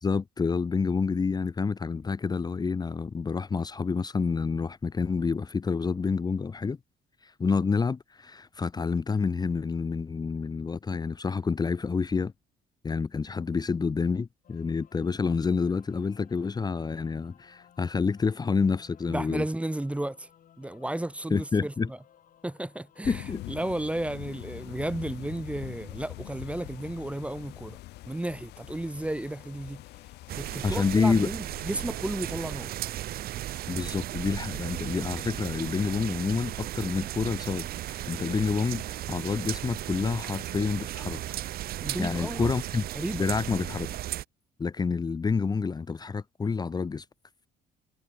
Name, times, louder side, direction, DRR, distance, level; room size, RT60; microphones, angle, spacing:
voice 1, 0.0-6.8 7.2-12.3 12.8-19.4 21.3-21.9 23.1-23.4 30.6-31.3 33.7-41.2 42.0-42.9 43.1-43.9 44.6-47.0, left 5 dB, 25° left, 1.0 m, -28 dB
sound 1, 14.4-30.5, left 10 dB, 55° left, 7.5 m, -58 dB
voice 2, 19.1-20.3 20.6-22.0 22.4-27.8 28.1-29.8 30.4-32.8 41.8-42.5 42.9-43.3, right 1 dB, 5° right, 1.4 m, -33 dB
sound 2, 23.0-32.7, left 18 dB, 80° left, 1.8 m, -44 dB
sound 3, 30.3-44.2, right 14 dB, 65° right, 0.9 m, -35 dB
cardioid pair, 110°, 17 cm